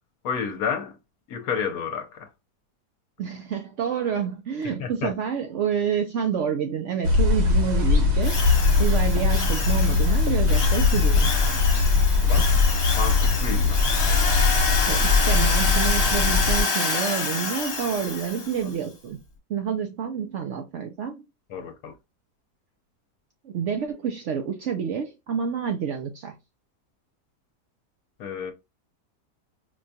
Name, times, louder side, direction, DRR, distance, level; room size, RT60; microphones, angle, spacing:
voice 1, 0.2-0.9 1.3-2.3 4.8-5.1 12.3-12.5 13.0-13.8 21.5-21.9 28.2-28.5, left 6 dB, 70° left, 1.1 m, -30 dB
voice 2, 3.2-8.4 8.8-11.3 14.9-19.2 19.5-21.2 23.4-26.4, right 7 dB, 75° right, 0.6 m, -28 dB
sound 1, 7.0-16.6, left 4 dB, 50° right, 1.0 m, -21 dB
Drill, 8.2-18.6, left 4 dB, 45° left, 1.2 m, -28 dB
5.0 x 2.3 x 2.7 m
omnidirectional pair, 1.8 m